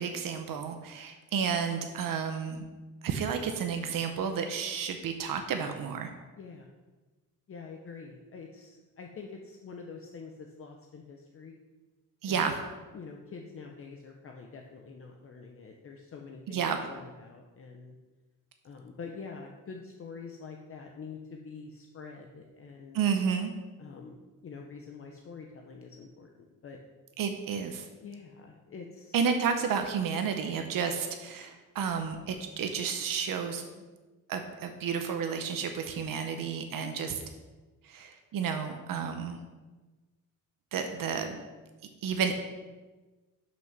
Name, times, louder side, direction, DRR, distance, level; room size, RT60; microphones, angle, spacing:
voice 1, 0.0-2.6 3.0-6.1 12.2-12.6 16.5-16.8 22.9-23.5 27.2-27.9 29.1-33.6 34.3-37.1 37.8-39.4 40.7-41.4 42.0-42.3, right 6 dB, 85° right, 5 dB, 0.8 m, -31 dB
voice 2, 6.4-6.7 7.5-11.6 12.2-12.6 12.9-18.0 18.6-23.0 23.8-26.8 28.0-29.2 36.8-37.1, left 5 dB, 40° left, 2 dB, 0.7 m, -46 dB
6.1 x 6.0 x 5.9 m, 1.2 s
wide cardioid pair, 175°, 33 cm